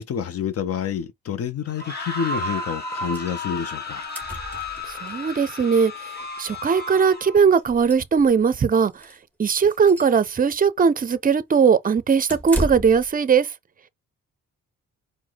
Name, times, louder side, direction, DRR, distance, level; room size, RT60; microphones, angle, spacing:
voice 1, 0.0-4.1, left 8 dB, 50° left, 0.6 m, -28 dB
sound 1, 1.7-7.4, left 2 dB, 35° left, 1.5 m, -33 dB
sound 2, 3.1-3.3 3.6-3.7 3.9-5.2 6.4-6.5 6.9-7.0 7.5-8.5 8.9-9.2 9.6-10.2 12.3-13.1, right 1 dB, 5° left, 1.3 m, -33 dB
voice 2, 5.0-5.9 6.4-8.9 9.4-13.5, right 6 dB, 30° right, 0.6 m, -19 dB
4.7 x 2.1 x 3.9 m
cardioid pair, 90°, 30 cm